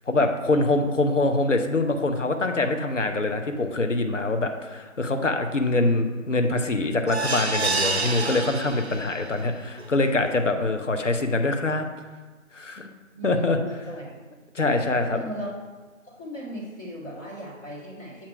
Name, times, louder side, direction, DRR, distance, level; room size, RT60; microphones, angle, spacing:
voice 1, 0.1-11.8 12.5-12.9 13.2-13.6 14.5-15.2, left 2 dB, 65° left, 5 dB, 0.8 m, -24 dB
sound 1, 7.1-9.3 9.8-9.9 10.2-10.3, right 3 dB, 55° right, 0.5 m, -28 dB
voice 2, 13.1-14.1 15.1-15.5 16.1-18.3, equal, 15° left, -14 dB, 1.7 m, -37 dB
7.5 x 2.9 x 5.8 m, 1.3 s
figure-of-eight pair, 165°, 41 cm